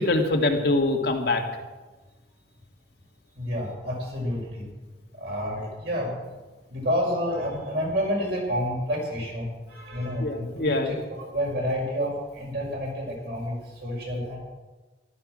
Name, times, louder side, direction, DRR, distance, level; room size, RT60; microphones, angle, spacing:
voice 1, 0.0-1.4 10.2-10.9, left 2 dB, 55° left, 2 dB, 1.8 m, -24 dB
voice 2, 3.4-4.7 5.2-6.2 6.7-13.5 13.8-14.4, equal, 55° right, -3 dB, 6.0 m, -29 dB
14.5 x 12.5 x 6.2 m, 1.2 s
head